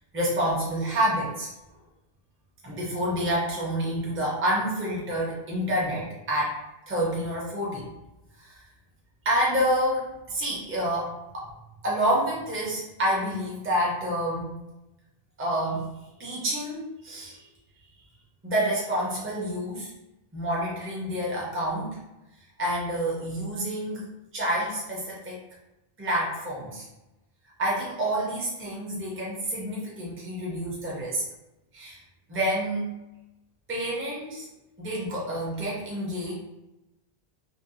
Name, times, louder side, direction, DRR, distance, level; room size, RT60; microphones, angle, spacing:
voice 1, 0.1-1.5 2.6-6.6 6.9-7.9 8.4-8.5 9.2-11.5 11.8-14.5 15.4-15.9 16.2-17.4 18.4-19.9 20.3-22.0 22.6-24.1 24.3-25.4 26.0-26.9 27.6-31.2 31.7-32.0 32.3-32.9 33.7-34.5 34.8-36.3, equal, 15° right, -5 dB, 0.5 m, -28 dB
2.6 x 2.2 x 2.6 m, 0.96 s
omnidirectional pair, 1.0 m